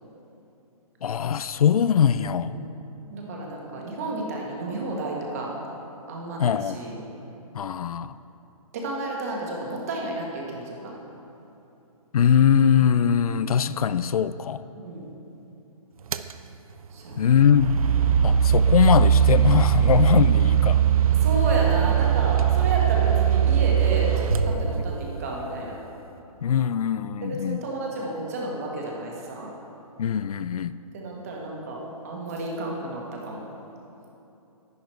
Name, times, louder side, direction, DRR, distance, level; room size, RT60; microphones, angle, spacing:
voice 1, 1.0-2.5 6.4-6.8 7.5-8.1 12.1-14.6 17.2-17.8 18.2-20.8 26.4-27.7 30.0-30.8, left 8 dB, 75° left, 15 dB, 0.4 m, -21 dB
voice 2, 3.1-5.5 6.1-7.0 8.7-11.0 12.8-13.3 14.8-15.1 16.9-17.3 21.2-25.8 27.2-29.5 30.9-33.4, right 2 dB, 25° right, -2 dB, 1.4 m, -31 dB
sound 1, 16.1-16.3 17.2-25.2, right 9 dB, 70° right, 0.5 m, -20 dB
11.0 x 10.0 x 4.4 m, 2.9 s
hypercardioid pair, 175°, 19 cm